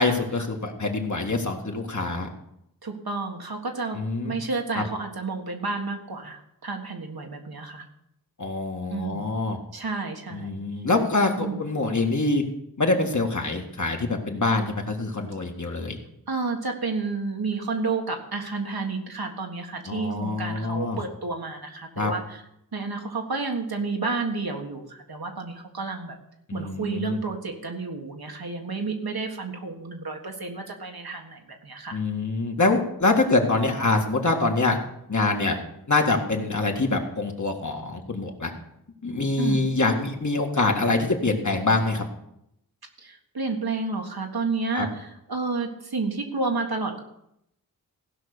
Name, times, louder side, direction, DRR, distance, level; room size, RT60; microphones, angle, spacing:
voice 1, 0.0-2.3 3.9-4.4 4.8-4.9 8.4-9.6 10.3-12.4 12.8-16.0 19.9-21.0 22.0-22.1 26.5-27.2 31.9-34.8 35.1-35.6 35.9-38.5 39.0-42.0 44.7-44.9, left 3 dB, 50° left, 2 dB, 1.8 m, -25 dB
voice 2, 2.8-7.8 8.9-9.3 9.7-10.5 11.4-11.6 16.3-22.4 22.7-26.2 26.5-32.0 39.4-39.7 43.0-47.0, right 3 dB, 80° right, 2 dB, 1.7 m, -31 dB
16.0 x 5.7 x 6.7 m, 0.78 s
wide cardioid pair, 60°, 36 cm